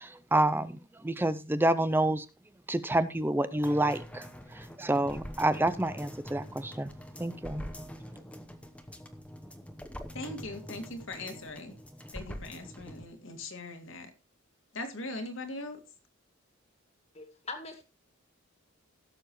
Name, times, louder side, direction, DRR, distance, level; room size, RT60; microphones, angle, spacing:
voice 1, 0.0-2.3 2.7-4.3 4.5-6.9 7.2-7.6, right 1 dB, 10° right, 13 dB, 0.5 m, -28 dB
sound 1, 3.6-13.1 13.4-13.5, equal, 5° left, 0.9 m, -44 dB
voice 2, 10.1-11.8 12.1-14.1 14.7-15.8, left 2 dB, 60° left, 5 dB, 2.1 m, -40 dB
voice 3, 17.1-17.8, left 3 dB, 30° left, 7 dB, 2.0 m, -41 dB
17.0 x 7.0 x 3.1 m, 0.29 s
head